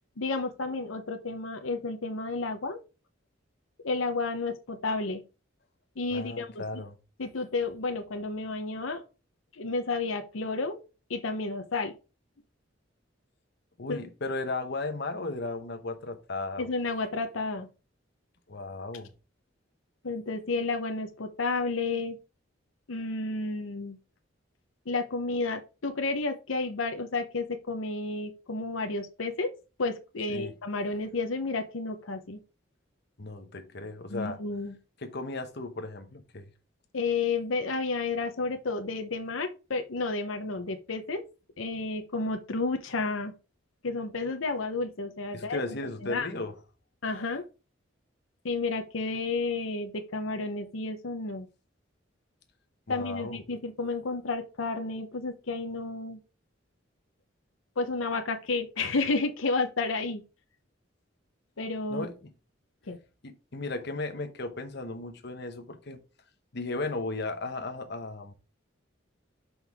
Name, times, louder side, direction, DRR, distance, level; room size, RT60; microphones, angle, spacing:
voice 1, 0.2-2.8 3.8-5.2 6.0-6.8 7.2-9.0 9.5-10.8 11.1-11.9 13.9-14.0 16.6-17.7 20.0-22.2 22.9-24.0 24.9-29.5 29.8-32.4 34.1-34.7 36.9-41.2 41.6-43.3 43.8-45.6 46.0-46.3 47.0-47.4 48.4-51.5 52.9-56.2 57.8-60.2 61.6-62.1 62.9-63.0, left 3 dB, 90° left, 0.8 m, -31 dB
voice 2, 6.1-7.0 13.8-16.7 18.5-19.1 30.3-30.5 33.2-34.4 35.0-36.5 45.3-46.5 52.9-53.4 61.9-62.3 63.2-66.0 66.5-68.3, left 2 dB, 55° left, 1.0 m, -35 dB
6.4 x 5.4 x 3.5 m
head